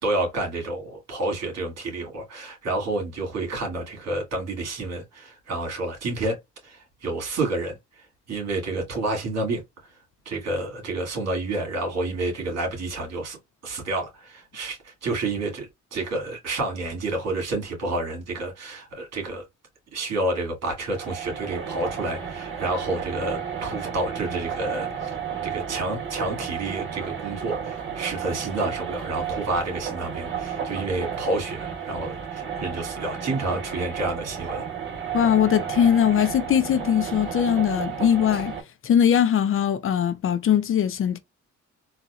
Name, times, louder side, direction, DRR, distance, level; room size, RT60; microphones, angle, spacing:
voice 1, 0.0-9.6 10.3-13.4 13.6-19.4 19.9-25.2 25.4-34.6, right 2 dB, 60° right, 2.2 m, -29 dB
sound 1, 20.9-38.6, right 7 dB, 40° right, 2.2 m, -32 dB
voice 2, 35.1-38.5 38.8-41.2, left 9 dB, 45° left, 0.4 m, -21 dB
4.0 x 2.7 x 2.3 m
cardioid pair, 90°, 30 cm